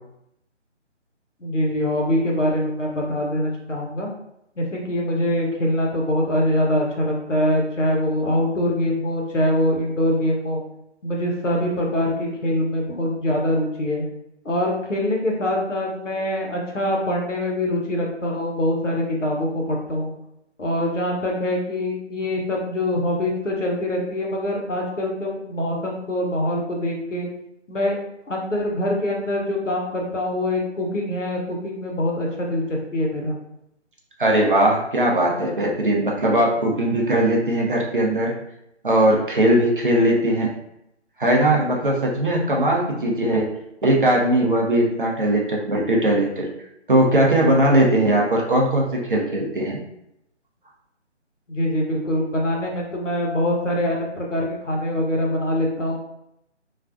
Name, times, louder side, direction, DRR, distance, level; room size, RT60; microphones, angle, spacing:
voice 1, 1.4-4.1 4.6-10.6 11.0-14.0 14.4-20.1 20.6-27.3 27.7-28.0 28.3-33.4 51.5-56.0, left 1 dB, 90° left, -1 dB, 0.8 m, -24 dB
voice 2, 34.2-38.3 38.8-40.5 41.2-43.5 43.8-46.5 46.9-49.8, right 1 dB, 45° right, -2 dB, 0.6 m, -19 dB
2.4 x 2.2 x 2.4 m, 0.81 s
figure-of-eight pair, 150°, 36 cm